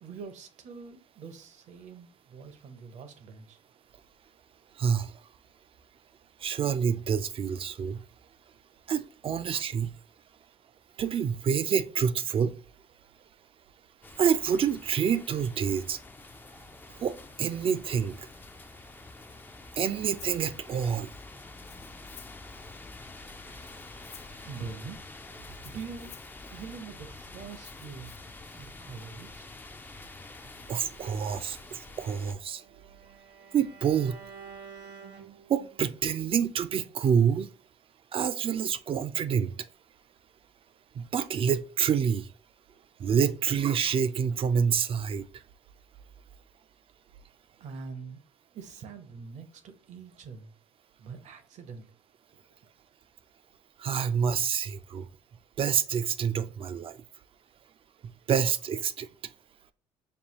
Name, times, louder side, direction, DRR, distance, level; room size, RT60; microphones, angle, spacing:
voice 1, 0.0-3.6 24.4-25.0 25.6-26.1 26.5-28.2 28.5-29.5 42.7-42.8 47.6-48.2 48.5-50.5 51.0-51.9 52.3-52.4, right 5 dB, 60° right, 0.8 m, -44 dB
voice 2, 4.8-5.1 6.4-8.0 8.9-9.9 11.0-12.5 14.2-16.0 17.0-18.2 19.8-21.1 30.7-32.6 33.5-34.2 35.5-37.5 38.1-39.5 41.0-42.3 43.0-45.2 53.8-55.1 55.6-57.0 58.3-59.1, right 7 dB, 45° right, 0.4 m, -27 dB
sound 1, 14.0-32.3, left 3 dB, 15° left, 0.4 m, -47 dB
Rattle (instrument), 20.2-20.4 21.5-22.5 23.5-24.4 25.5-26.4 27.5-28.2, left 8 dB, 55° left, 0.6 m, -52 dB
Bowed string instrument, 31.8-35.9, right 6 dB, 90° right, 1.6 m, -50 dB
5.4 x 2.3 x 2.9 m
supercardioid pair, 80°, 14 cm